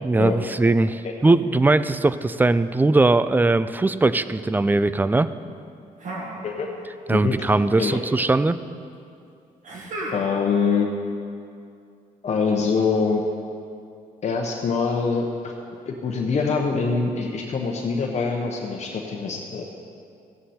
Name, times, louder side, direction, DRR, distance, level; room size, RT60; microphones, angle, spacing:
voice 1, 0.0-5.3 7.1-8.6, right 2 dB, 10° right, 14 dB, 0.4 m, -20 dB
sound 1, 6.0-7.0 7.3-8.0 9.6-10.6, right 1 dB, 60° right, 2.1 m, -35 dB
voice 2, 10.1-10.9 12.2-13.2 14.2-15.5 15.8-19.6, left 5 dB, 50° left, 0 dB, 1.0 m, -24 dB
16.0 x 7.8 x 4.3 m, 2.4 s
cardioid pair, 100°, 15 cm